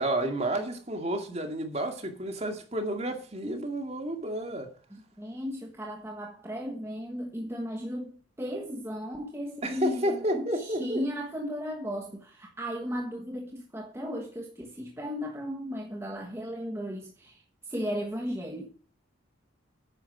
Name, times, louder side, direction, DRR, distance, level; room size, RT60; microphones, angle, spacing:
voice 1, 0.0-4.7 9.6-11.0, right 1 dB, 30° right, 2.3 m, -31 dB
voice 2, 4.9-18.7, equal, 15° right, 1.3 m, -35 dB
10.5 x 9.8 x 4.9 m
head